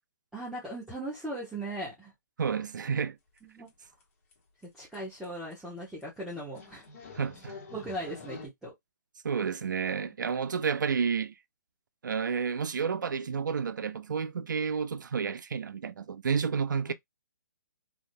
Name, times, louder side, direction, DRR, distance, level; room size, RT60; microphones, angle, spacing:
voice 1, 0.3-2.1 3.4-3.7 4.7-6.8 7.7-8.7 10.1-10.2 16.9-17.0, right 1 dB, 5° right, 1.0 m, -38 dB
voice 2, 2.4-3.2 7.1-7.6 9.2-11.3 12.0-16.9, right 6 dB, 80° right, 0.5 m, -30 dB
sound 1, 3.4-3.5 3.7-4.0 4.3-4.4 4.6-4.7 4.9-5.0 5.2-5.5 6.0-6.1 6.6-8.5, left 4 dB, 45° left, 1.4 m, -46 dB
3.6 x 2.7 x 2.2 m
hypercardioid pair, 150°, 10 cm